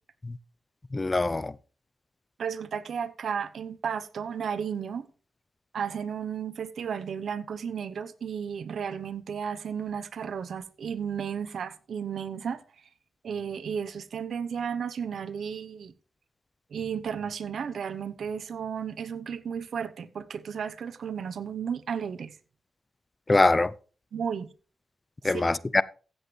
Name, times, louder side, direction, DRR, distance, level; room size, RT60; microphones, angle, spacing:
voice 1, 0.9-1.5 23.3-23.7 25.2-25.8, left 2 dB, 30° left, 0.5 m, -23 dB
voice 2, 2.4-5.1 5.7-12.6 13.2-15.9 16.7-22.4 24.1-24.5 25.2-25.4, right 7 dB, 75° right, 0.8 m, -33 dB
15.5 x 8.0 x 3.2 m
cardioid pair, 70°, 0 cm